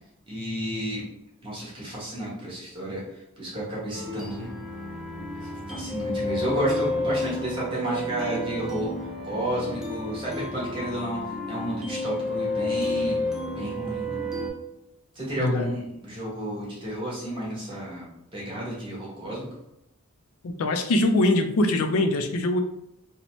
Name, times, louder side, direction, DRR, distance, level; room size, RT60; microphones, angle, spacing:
voice 1, 0.3-1.0 1.4-3.0 3.4-4.5 5.3-8.9 9.2-13.2 13.5-14.2 15.1-19.5, right 1 dB, 25° right, -6 dB, 1.0 m, -32 dB
sound 1, 3.9-14.5, left 1 dB, ahead, 0.3 m, -31 dB
voice 2, 15.4-15.7 20.4-22.6, left 2 dB, 75° left, 6 dB, 0.4 m, -23 dB
2.7 x 2.1 x 3.0 m, 0.85 s
head